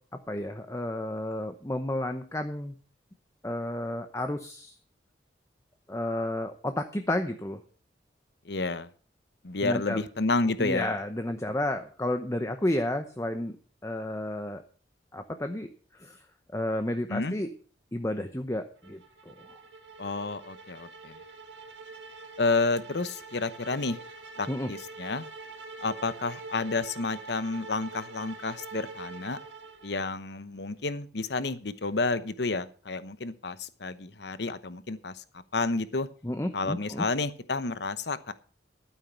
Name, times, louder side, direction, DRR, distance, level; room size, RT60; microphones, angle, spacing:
voice 1, 0.3-2.7 3.4-4.7 5.9-7.6 9.6-10.0 10.6-13.5 13.8-14.6 15.1-15.7 16.0-16.2 16.5-17.5 17.9-19.0 19.3-19.4 24.5-24.7 36.2-37.0, left 1 dB, 15° left, 7 dB, 0.8 m, -31 dB
voice 2, 8.4-8.9 9.4-10.9 17.1-17.3 20.0-21.2 22.4-24.0 24.4-25.3 25.8-29.4 29.8-35.2 35.5-36.1 36.5-38.3, left 3 dB, 65° left, 14 dB, 0.9 m, -30 dB
sound 1, 18.8-30.2, right 3 dB, 85° right, 1.9 m, -45 dB
12.5 x 9.2 x 5.8 m, 0.41 s
head